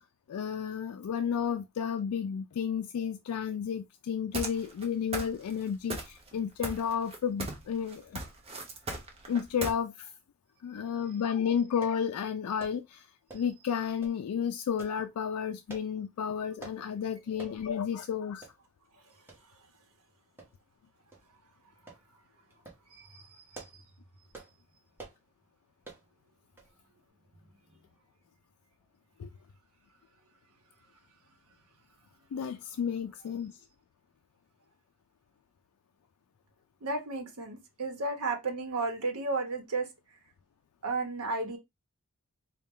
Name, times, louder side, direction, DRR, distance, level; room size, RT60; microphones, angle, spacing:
voice 1, 0.3-8.2 9.3-10.1 10.6-13.1 13.3-18.5 29.2-29.3 32.3-33.5, left 7 dB, 85° left, 0.3 m, -32 dB
sound 1, 4.3-4.8 5.1-5.6 5.9-6.4 6.6-7.7 7.9-9.7, right 2 dB, 25° right, 0.8 m, -36 dB
sound 2, 11.8-12.0 12.6-12.8 13.3-13.6 14.0-14.2 14.8-15.0 15.7-15.9 16.6-16.8 17.4-17.6 18.0-18.1 18.4-18.6 19.3-19.4 20.4-20.8 21.1-21.3 21.9-22.0 22.5-22.8 23.3-23.8 24.3-24.5 25.0-25.2 25.8-26.1 26.6-26.7 27.0-27.1, right 3 dB, 10° right, 1.2 m, -48 dB
voice 2, 22.9-23.8 36.8-39.9 40.8-41.6, right 3 dB, 80° right, 0.9 m, -33 dB
4.2 x 2.2 x 3.5 m
head